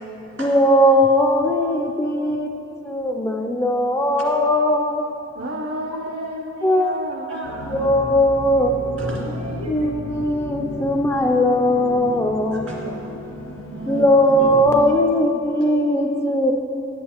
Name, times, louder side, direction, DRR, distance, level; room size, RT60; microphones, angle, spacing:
voice 1, 0.4-2.5 2.8-5.0 6.6-7.0 7.7-8.8 9.7-12.7 13.9-16.5, left 1 dB, 15° left, 3 dB, 0.3 m, -19 dB
voice 2, 5.3-7.3 14.3-14.5, equal, 55° right, 1 dB, 0.4 m, -31 dB
voice 3, 7.3-7.9 9.0-9.9 12.5-14.5 14.8-14.9, equal, 85° right, -4 dB, 2.0 m, -34 dB
sound 1, 7.4-14.8, left 2 dB, 90° left, 0.6 m, -33 dB
11.0 x 8.3 x 2.9 m, 3.0 s
head